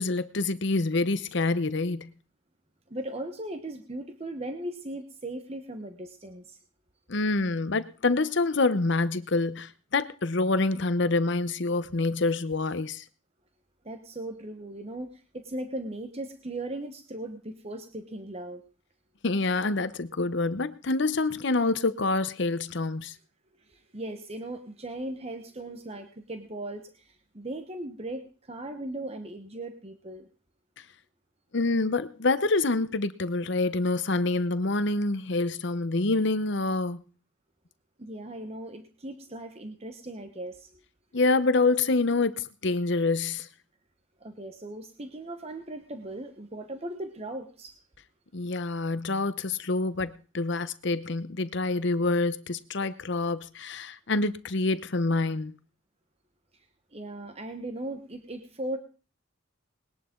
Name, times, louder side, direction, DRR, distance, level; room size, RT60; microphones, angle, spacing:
voice 1, 0.0-2.1 7.1-13.0 19.2-23.1 31.5-37.0 41.1-43.5 48.3-55.5, left 3 dB, 60° left, 0.8 m, -26 dB
voice 2, 2.9-6.6 13.8-18.6 23.7-30.3 38.0-40.7 44.2-47.7 56.9-58.8, right 1 dB, 30° right, 1.1 m, -38 dB
20.0 x 11.0 x 3.8 m
head